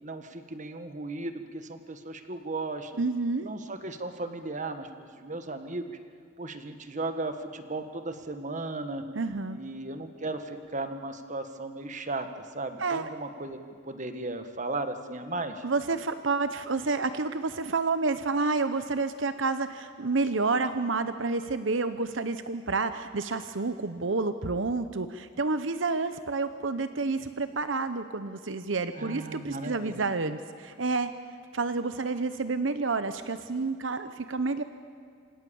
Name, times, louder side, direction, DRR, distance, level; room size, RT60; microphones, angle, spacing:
voice 1, 0.0-2.9 3.4-4.9 5.1-6.0 6.4-9.1 9.5-12.3 12.5-13.6 13.8-15.6 29.0-30.0, right 2 dB, 40° right, 8 dB, 1.7 m, -36 dB
voice 2, 3.0-3.5 9.1-9.6 12.8-13.1 15.6-31.1 31.5-34.6, right 3 dB, 80° right, 10 dB, 0.9 m, -29 dB
27.0 x 26.5 x 7.2 m, 2.3 s
head